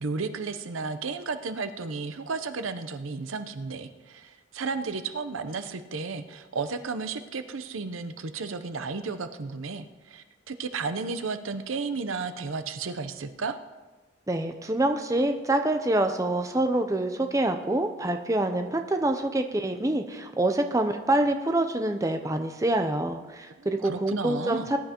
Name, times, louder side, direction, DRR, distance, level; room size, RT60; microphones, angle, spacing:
voice 1, 0.0-13.6 23.6-24.7, right 4 dB, 85° right, 10 dB, 0.7 m, -33 dB
voice 2, 14.3-24.8, right 1 dB, 15° right, 6 dB, 0.5 m, -26 dB
20.0 x 10.5 x 2.9 m, 1.2 s
head